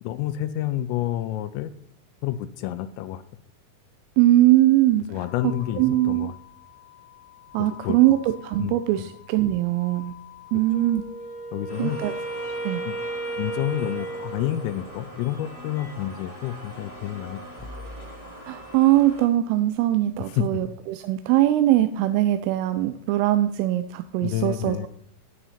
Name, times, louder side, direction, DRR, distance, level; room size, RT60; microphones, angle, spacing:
voice 1, 0.0-1.7 2.2-3.2 5.1-6.3 7.6-8.0 8.6-9.1 11.5-12.0 12.9-13.0 13.3-17.7 20.3-20.6 24.2-24.9, left 13 dB, 85° left, 11 dB, 3.1 m, -29 dB
voice 2, 4.2-5.0 5.4-6.3 7.5-10.1 10.5-11.0 11.8-12.1 12.6-12.8 18.5-24.9, right 14 dB, 85° right, 10 dB, 3.1 m, -21 dB
sound 1, 5.2-14.3, left 15 dB, 60° left, 3.1 m, -48 dB
Wind instrument woodwind instrument, 10.7-15.1, right 2 dB, 25° right, 1.1 m, -34 dB
sound 2, 11.7-19.3, equal, 10° left, 1.4 m, -42 dB
10.0 x 9.3 x 4.2 m, 0.71 s
omnidirectional pair, 5.9 m